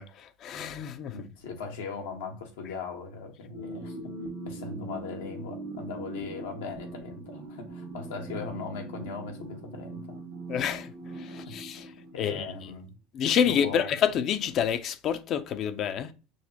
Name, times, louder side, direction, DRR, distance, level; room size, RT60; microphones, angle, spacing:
voice 1, 0.0-1.2 10.5-11.9 12.2-12.5 13.1-16.1, left 8 dB, 45° left, 0.4 m, -28 dB
voice 2, 1.1-4.0 4.4-10.2 12.1-12.9 13.4-13.9, left 4 dB, 90° left, 1.2 m, -39 dB
sound 1, 3.5-12.5, right 2 dB, 85° right, 1.5 m, -41 dB
6.3 x 2.2 x 2.8 m
supercardioid pair, 115°, 0 cm